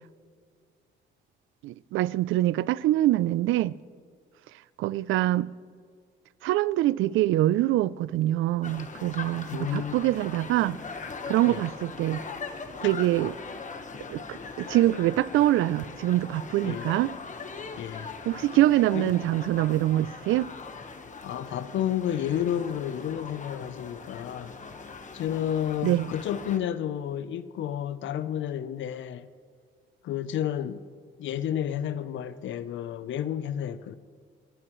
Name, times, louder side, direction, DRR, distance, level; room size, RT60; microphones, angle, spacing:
voice 1, 1.6-3.7 4.8-5.5 6.4-10.8 11.3-12.2 12.8-13.3 14.1-17.1 18.3-20.5 25.8-26.1, right 15 dB, 85° right, 0.4 m, -24 dB
sound 1, 8.6-26.6, left 4 dB, 40° left, 1.3 m, -40 dB
voice 2, 9.5-10.0 11.4-11.6 12.8-12.9 16.6-16.9 17.8-18.1 18.9-19.1 21.2-24.5 25.1-29.3 30.0-30.8 31.2-34.0, left 10 dB, 75° left, 0.7 m, -31 dB
29.0 x 11.0 x 3.1 m
cardioid pair, 90°, 20 cm